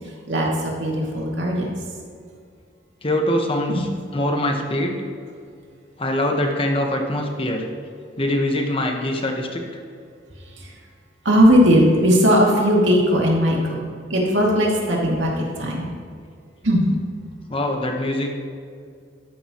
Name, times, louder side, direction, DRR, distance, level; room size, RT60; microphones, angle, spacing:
voice 1, 0.3-1.7 3.7-3.8 11.2-13.8 14.1-15.9 16.6-16.9, equal, 85° right, -3 dB, 2.5 m, -18 dB
voice 2, 3.0-5.0 6.0-7.7 8.2-9.6 17.5-18.3, left 1 dB, 30° left, 2 dB, 1.3 m, -23 dB
13.0 x 11.0 x 3.1 m, 2.3 s
head